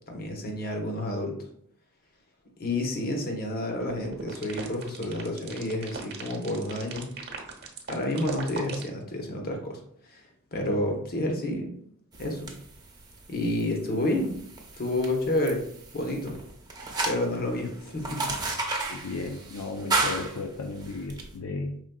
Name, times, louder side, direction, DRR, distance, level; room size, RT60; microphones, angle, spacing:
voice 1, 0.1-1.4 2.6-7.1 7.9-9.8 10.1-10.2 10.5-11.7 12.2-12.5 13.3-14.3 14.8-15.6 15.9-16.4 17.0-18.2, left 1 dB, 45° left, 2 dB, 0.9 m, -29 dB
sound 1, 3.8-8.9, right 4 dB, 50° right, 0.8 m, -38 dB
sound 2, 12.1-21.3, right 3 dB, 20° right, 0.6 m, -34 dB
voice 2, 18.9-21.8, left 3 dB, 75° left, 3 dB, 0.4 m, -34 dB
5.1 x 3.6 x 2.2 m, 0.67 s
head